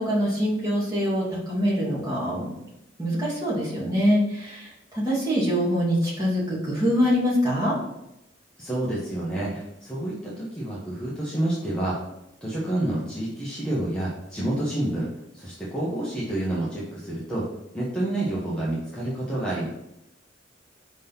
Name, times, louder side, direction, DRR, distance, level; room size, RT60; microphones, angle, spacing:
voice 1, 0.0-2.5 3.0-7.8, equal, 20° right, -8 dB, 2.6 m, -24 dB
voice 2, 8.6-12.0 12.4-15.1 15.3-17.5 17.7-19.7, right 1 dB, 5° left, -7 dB, 1.1 m, -28 dB
5.3 x 3.9 x 5.7 m, 0.86 s
head